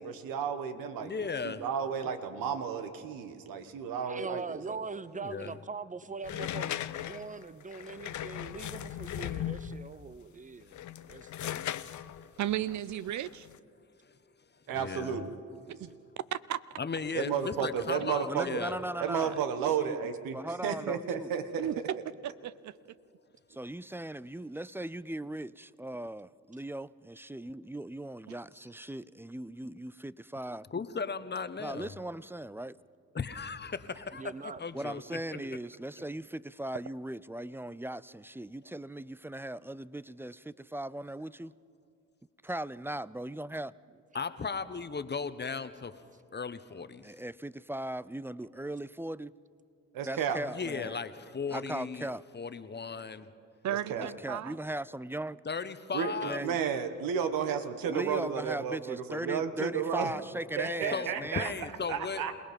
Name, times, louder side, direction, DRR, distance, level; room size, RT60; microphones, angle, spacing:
voice 1, 0.0-4.8 14.7-15.4 17.1-18.6 19.0-20.4 20.6-21.7 49.9-50.4 53.9-54.1 55.9-56.1 56.4-60.1 60.6-61.5 61.9-62.3, right 7 dB, 75° right, 9 dB, 1.5 m, -32 dB
voice 2, 1.0-1.7 5.1-5.6 14.0-14.1 14.7-15.2 16.8-18.8 30.7-31.9 33.1-35.0 44.1-45.9 46.3-47.1 50.4-52.1 52.3-53.3 55.4-56.4 60.9-62.3, left 5 dB, 30° left, 12 dB, 1.1 m, -36 dB
voice 3, 4.0-10.7 11.1-11.7 34.2-34.6 35.1-35.6, right 4 dB, 20° right, 17 dB, 0.8 m, -42 dB
sound 1, 6.2-9.9 10.6-13.6, left 11 dB, 55° left, 0.7 m, -38 dB
voice 4, 12.4-13.5 15.8-15.9 16.3-16.6 19.0-19.7 21.6-22.8 28.3-28.4 53.6-54.6, right 11 dB, 55° right, 18 dB, 0.6 m, -35 dB
voice 5, 18.3-19.4 19.8-20.0 20.3-21.3 23.5-30.7 31.6-32.8 34.7-41.5 42.4-43.7 47.0-49.3 50.0-51.0 51.5-52.3 54.0-55.4 56.2-56.6 57.9-61.5, right 1 dB, 5° right, 19 dB, 0.4 m, -38 dB
27.5 x 18.5 x 5.3 m, 2.4 s
hypercardioid pair, 55°, 35 cm